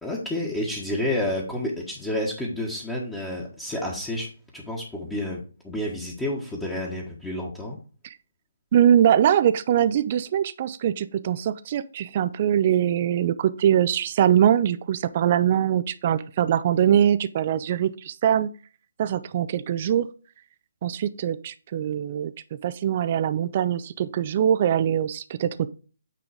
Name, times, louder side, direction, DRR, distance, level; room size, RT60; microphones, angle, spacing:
voice 1, 0.0-7.8, left 1 dB, 5° left, -3 dB, 1.5 m, -30 dB
voice 2, 8.7-18.5 19.0-20.1 20.8-22.3 22.6-25.7, right 10 dB, 35° right, 14 dB, 0.5 m, -22 dB
9.0 x 3.8 x 4.9 m, 0.37 s
figure-of-eight pair, 145°, 0 cm